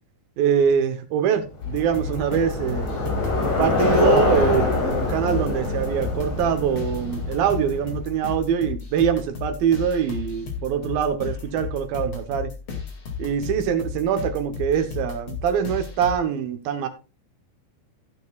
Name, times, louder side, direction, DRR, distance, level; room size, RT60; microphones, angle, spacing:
voice 1, 0.4-2.9 3.4-12.5 13.2-16.9, right 8 dB, 70° right, 2.4 m, -23 dB
Bicycle, 1.6-8.1, left 3 dB, 90° left, 7.1 m, -25 dB
sound 1, 1.6-16.1, left 6 dB, 40° left, 2.3 m, -34 dB
16.0 x 7.8 x 2.3 m
omnidirectional pair, 5.0 m